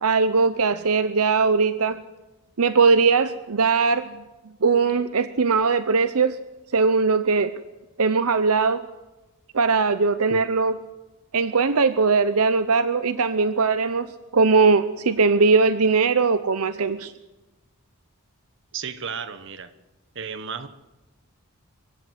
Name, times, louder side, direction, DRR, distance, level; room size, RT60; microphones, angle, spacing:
voice 1, 0.0-2.0 2.6-4.2 4.6-6.4 6.7-7.5 8.0-8.8 9.5-10.7 11.3-17.1, right 4 dB, 75° right, 12 dB, 0.8 m, -20 dB
voice 2, 18.7-19.7 20.1-20.7, right 6 dB, 55° right, 11 dB, 1.3 m, -33 dB
24.5 x 16.0 x 8.3 m, 1.1 s
head